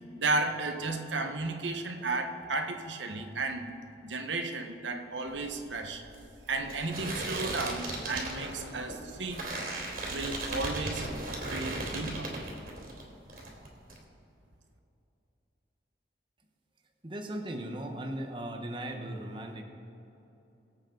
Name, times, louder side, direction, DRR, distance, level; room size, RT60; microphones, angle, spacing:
voice 1, 0.2-3.7 4.0-6.0 6.5-9.4 10.1-11.1 11.5-12.3, right 3 dB, 90° right, 5 dB, 1.2 m, -33 dB
sound 1, 5.3-13.0 13.3-14.0, right 2 dB, 50° right, 2.9 m, -37 dB
voice 2, 17.0-19.6, right 1 dB, 25° right, 3 dB, 1.1 m, -37 dB
23.5 x 8.3 x 3.9 m, 3.0 s
head